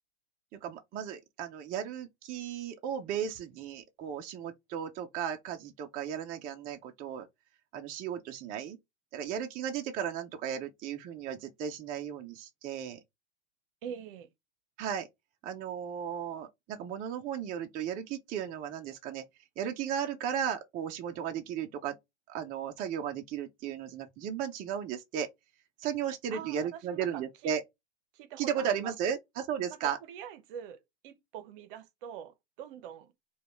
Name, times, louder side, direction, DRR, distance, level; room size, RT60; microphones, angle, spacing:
voice 1, 0.5-7.3 7.7-8.8 9.1-13.0 14.8-15.1 15.4-19.2 19.6-22.0 22.3-25.3 25.8-27.6 28.4-30.0, right 8 dB, 25° right, 0.5 m, -35 dB
voice 2, 13.8-14.3 26.3-27.5 28.1-29.1 29.7-30.8 31.0-33.1, right 9 dB, 50° right, 0.8 m, -44 dB
4.9 x 2.3 x 3.0 m
hypercardioid pair, 115°, 34 cm